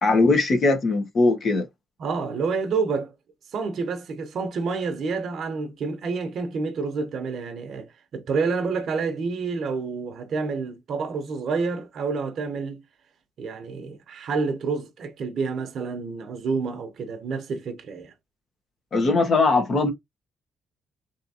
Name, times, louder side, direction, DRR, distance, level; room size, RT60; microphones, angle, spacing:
voice 1, 0.0-1.7 18.9-19.9, left 3 dB, 50° left, 1.3 m, -20 dB
voice 2, 2.0-3.1 3.5-12.8 13.4-18.1, right 4 dB, 65° right, 0.7 m, -28 dB
3.4 x 2.8 x 2.7 m
cardioid pair, 90°, 0 cm